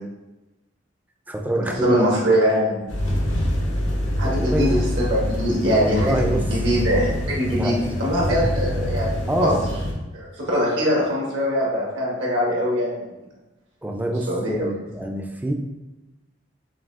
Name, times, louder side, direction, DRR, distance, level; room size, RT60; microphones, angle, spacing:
voice 1, 1.3-2.1 4.2-4.7 5.8-6.4 7.6-7.9 8.3-8.5 9.3-9.7 13.8-15.5, right 1 dB, 10° right, 2 dB, 0.3 m, -25 dB
voice 2, 1.8-2.9 4.2-9.1 9.4-9.5 10.1-13.1 14.3-14.7, equal, 75° right, -4 dB, 1.3 m, -22 dB
sound 1, 2.9-9.9, equal, 85° left, 0.7 m, -25 dB
5.9 x 2.3 x 2.4 m, 1.0 s
head